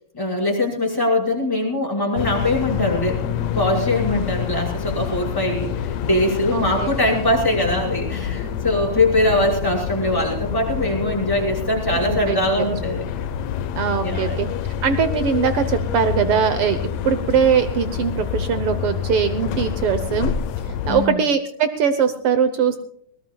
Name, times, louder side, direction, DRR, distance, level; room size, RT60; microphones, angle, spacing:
voice 1, 0.1-13.0 14.0-14.4 20.9-21.2, left 1 dB, 5° left, -2 dB, 5.3 m, -22 dB
sound 1, 2.2-21.1, left 9 dB, 75° left, 1.6 m, -27 dB
voice 2, 6.5-6.9 11.9-12.4 13.8-14.5 14.8-16.8 17.0-20.3 20.9-22.8, right 7 dB, 80° right, 10 dB, 1.2 m, -21 dB
22.0 x 18.5 x 2.3 m, 0.65 s
omnidirectional pair, 4.0 m